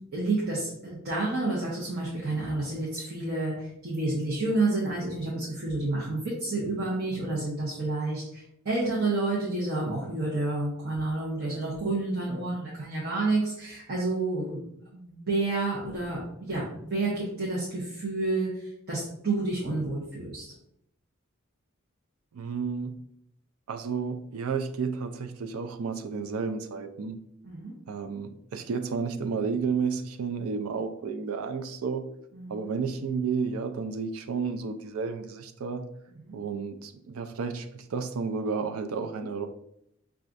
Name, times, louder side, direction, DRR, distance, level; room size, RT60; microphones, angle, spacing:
voice 1, 0.1-14.6 14.9-20.4 27.4-27.7 32.3-32.7 36.2-36.4, right 2 dB, 50° right, 0.9 m, -30 dB
voice 2, 22.3-23.0 23.7-27.2 27.9-32.0 32.5-35.9 36.3-39.5, right 5 dB, 85° right, 0.4 m, -32 dB
5.9 x 2.4 x 2.5 m
head